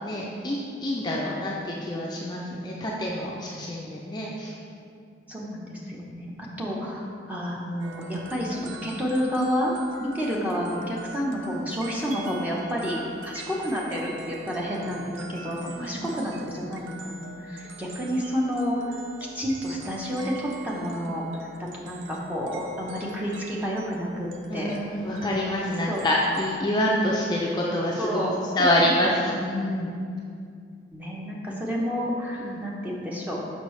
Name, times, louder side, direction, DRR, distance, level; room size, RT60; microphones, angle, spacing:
voice 1, 0.0-4.6 10.2-10.5 15.7-16.1 24.5-28.2 28.5-29.9 32.4-32.6, left 1 dB, 20° left, -4 dB, 0.4 m, -27 dB
voice 2, 5.3-6.3 6.6-9.7 10.0-19.0 19.3-21.5 21.7-24.7 25.9-26.0 28.0-28.3 28.6-28.7 30.9-33.4, equal, 10° right, -4 dB, 0.7 m, -30 dB
sound 1, 7.8-26.6, right 3 dB, 80° right, 0.4 m, -44 dB
6.5 x 5.3 x 3.1 m, 2.4 s
head